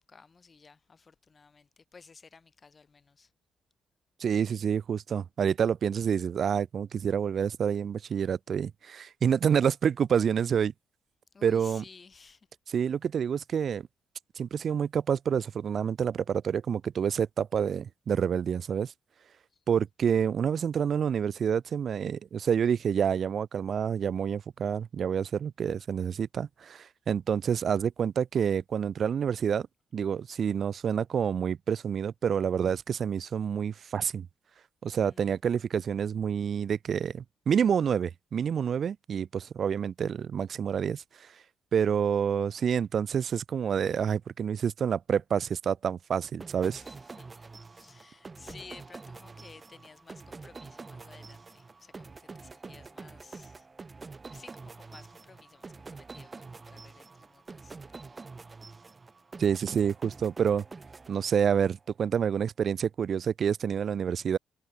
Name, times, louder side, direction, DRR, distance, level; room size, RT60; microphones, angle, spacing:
voice 1, 0.0-3.3 11.3-12.5 19.5-19.6 35.1-35.3 46.8-47.5 47.7-53.7 54.3-58.2 61.2-61.3, left 4 dB, 35° left, 3.0 m, -54 dB
voice 2, 4.2-10.7 11.4-11.8 12.7-13.8 14.4-18.9 19.7-29.7 29.9-34.3 34.8-41.3 41.7-46.8 59.4-60.6 61.1-64.4, right 7 dB, 55° right, 0.3 m, -28 dB
sound 1, 46.4-61.7, right 4 dB, 30° right, 0.9 m, -47 dB
cardioid pair, 90°, 0 cm